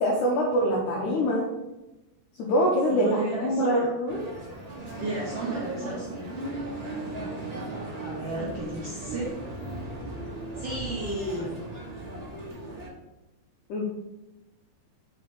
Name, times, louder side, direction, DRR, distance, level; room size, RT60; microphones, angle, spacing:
voice 1, 0.0-1.5 2.4-4.2 13.7-13.8, equal, 80° left, -3 dB, 1.7 m, -24 dB
voice 2, 2.9-3.9 5.0-6.2 8.0-9.3 10.6-11.5, right 1 dB, 85° right, -6 dB, 1.3 m, -33 dB
sound 1, 4.1-12.9, right 2 dB, 65° right, 0.5 m, -37 dB
6.0 x 4.9 x 4.7 m, 0.99 s
omnidirectional pair, 5.0 m